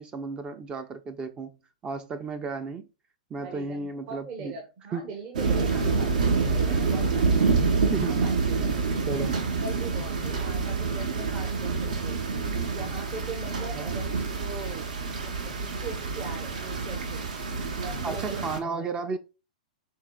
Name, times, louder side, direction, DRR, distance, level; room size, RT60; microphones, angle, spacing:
voice 1, 0.0-1.6 1.8-2.9 3.3-4.5 4.9-5.1 7.6-8.3 9.1-9.4 13.8-13.9 18.0-19.2, right 4 dB, 20° right, 0.4 m, -33 dB
voice 2, 3.4-7.3 8.0-12.2 12.7-17.3 17.7-18.9, right 3 dB, 40° right, 0.9 m, -41 dB
sound 1, 5.3-18.6, right 4 dB, 65° right, 0.9 m, -27 dB
4.6 x 3.6 x 2.2 m
hypercardioid pair, 110°, 4 cm